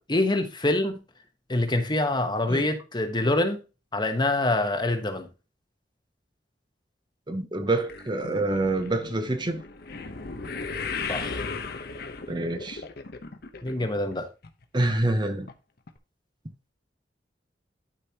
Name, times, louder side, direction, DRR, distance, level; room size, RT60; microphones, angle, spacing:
voice 1, 0.1-1.0 1.5-3.6 3.9-5.3 11.1-11.4 13.6-14.3, left 2 dB, 25° left, 1.2 m, -25 dB
voice 2, 7.3-9.6 12.3-12.8 14.7-15.5, right 2 dB, 25° right, 0.9 m, -26 dB
sound 1, 7.8-14.2 14.4-14.9 15.5-15.6 15.9-16.0, left 4 dB, 60° left, 1.0 m, -36 dB
11.5 x 5.2 x 2.9 m
head